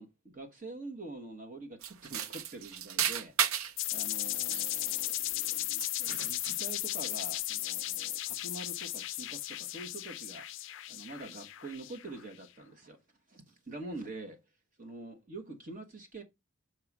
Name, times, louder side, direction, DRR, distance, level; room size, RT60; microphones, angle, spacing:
voice 1, 0.0-13.0 13.3-14.4 14.8-16.2, right 2 dB, 35° right, 1.2 m, -46 dB
sound 1, 1.8-3.8 4.3-5.5 5.8-6.7, right 9 dB, 75° right, 0.5 m, -34 dB
sound 2, 3.8-12.3, left 16 dB, 60° left, 0.4 m, -36 dB
6.6 x 3.1 x 5.9 m
head